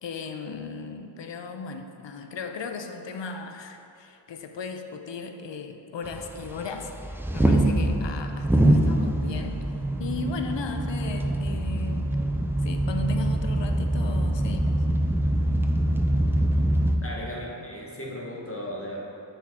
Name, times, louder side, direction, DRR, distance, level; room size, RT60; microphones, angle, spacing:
voice 1, 0.0-6.9 7.3-9.7 10.0-12.3 12.6-14.8, left 4 dB, 70° left, 6 dB, 0.5 m, -36 dB
sound 1, 6.0-17.0, right 1 dB, 5° right, 0.3 m, -24 dB
voice 2, 17.0-19.0, equal, 30° left, -3 dB, 1.2 m, -36 dB
9.1 x 3.8 x 3.6 m, 2.8 s
wide cardioid pair, 75°, 45 cm